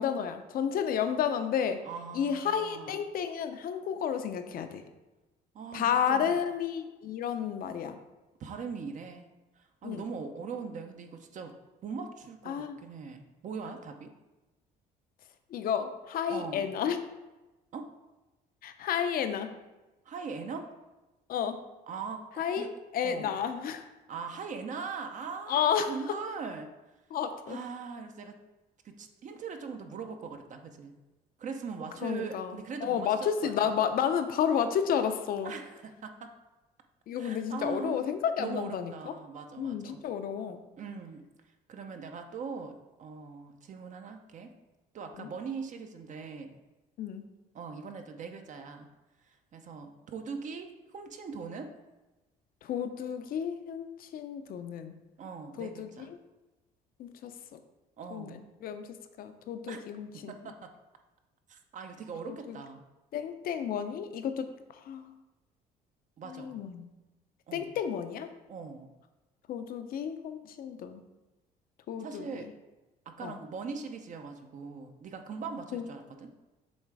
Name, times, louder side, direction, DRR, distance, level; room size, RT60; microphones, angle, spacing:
voice 1, 0.0-1.8 2.1-4.8 5.7-8.0 9.8-10.1 12.5-12.8 15.5-17.0 18.6-19.5 21.3-21.6 22.4-23.8 25.5-25.9 27.1-27.6 32.0-35.5 37.1-39.1 39.6-40.6 45.2-45.3 47.0-47.2 52.6-54.9 55.6-55.9 57.0-57.6 58.1-60.3 62.3-62.6 63.1-64.5 64.9-65.1 66.3-66.8 67.5-68.3 69.5-71.0 71.9-72.3 73.2-73.4 75.7-75.9, left 8 dB, 60° left, 8 dB, 0.6 m, -31 dB
voice 2, 1.8-3.0 5.5-6.4 8.4-9.3 9.6-11.5 11.8-14.1 16.3-16.6 17.7-17.9 20.1-20.7 21.9-22.7 23.0-23.4 24.1-26.7 27.5-28.4 28.8-30.9 31.4-33.5 35.4-36.3 37.2-38.1 38.4-40.0 40.8-41.2 41.7-42.7 43.0-44.5 44.9-46.5 47.5-48.9 49.3-51.7 55.2-56.1 58.0-58.4 59.7-59.8 60.1-60.7 61.5-62.8 66.2-66.6 67.5-67.7 68.5-68.9 72.0-72.5 73.1-76.3, right 5 dB, 45° right, 5 dB, 0.7 m, -41 dB
7.3 x 3.2 x 4.7 m, 1.1 s
cardioid pair, 110°, 17 cm